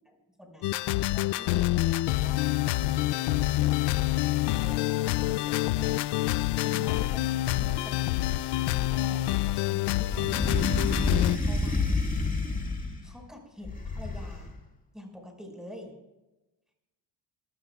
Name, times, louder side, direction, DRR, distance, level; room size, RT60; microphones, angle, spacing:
voice 1, 0.0-2.5 4.5-6.1 6.6-8.6 8.9-12.1 13.0-14.5 14.9-15.9, left 1 dB, ahead, 1 dB, 5.5 m, -47 dB
sound 1, 0.6-11.4, left 16 dB, 90° left, 0.6 m, -27 dB
sound 2, 10.1-13.1 13.6-14.6, left 3 dB, 20° left, 2.0 m, -29 dB
26.5 x 16.0 x 2.4 m, 1.0 s
cardioid pair, 120°, 40 cm